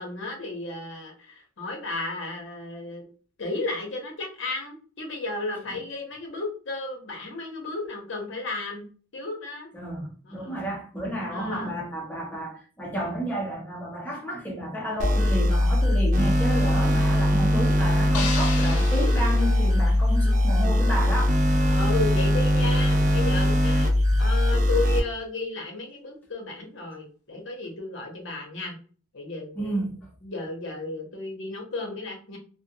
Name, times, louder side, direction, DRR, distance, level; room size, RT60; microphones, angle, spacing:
voice 1, 0.0-3.1 3.4-8.9 9.1-9.7 10.2-10.6 11.2-11.8 21.7-23.9 24.2-28.8 29.1-29.8 30.2-32.4, left 3 dB, 60° left, 0.8 m, -33 dB
voice 2, 9.7-21.4 29.6-30.1, right 1 dB, 10° left, 0.6 m, -31 dB
sound 1, 15.0-25.0, left 1 dB, 35° right, 0.4 m, -21 dB
sound 2, 18.1-20.4, left 5 dB, 90° left, 0.5 m, -35 dB
2.4 x 2.3 x 2.7 m
head